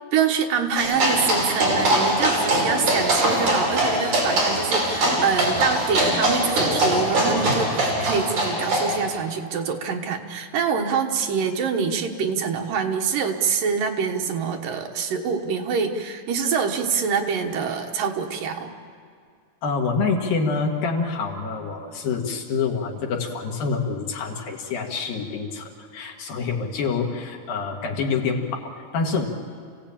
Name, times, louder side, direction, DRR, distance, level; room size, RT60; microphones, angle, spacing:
voice 1, 0.1-18.7, right 6 dB, 70° right, 3 dB, 3.0 m, -25 dB
sound 1, 0.8-9.0, right 1 dB, 55° right, 6.4 m, -22 dB
voice 2, 19.6-29.3, left 4 dB, 75° left, 1 dB, 3.8 m, -26 dB
28.5 x 17.0 x 8.8 m, 2.2 s
omnidirectional pair, 4.2 m